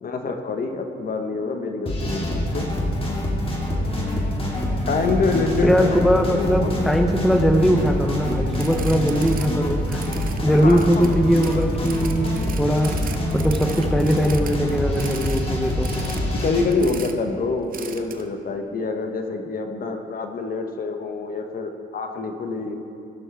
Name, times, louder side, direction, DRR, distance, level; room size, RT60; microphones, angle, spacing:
voice 1, 0.0-2.7 4.5-6.0 6.3-6.7 10.5-11.0 16.4-22.8, left 3 dB, 45° left, 5 dB, 0.9 m, -26 dB
sound 1, 1.9-16.6, left 1 dB, 30° left, 1.9 m, -25 dB
voice 2, 5.6-10.0 10.4-15.9, equal, ahead, 4 dB, 0.6 m, -20 dB
sound 2, 8.5-9.5 9.8-15.4 15.8-16.2 16.7-17.1 17.7-18.2, right 7 dB, 45° right, 0.7 m, -38 dB
16.0 x 6.1 x 3.4 m, 2.8 s
cardioid pair, 90°, 20 cm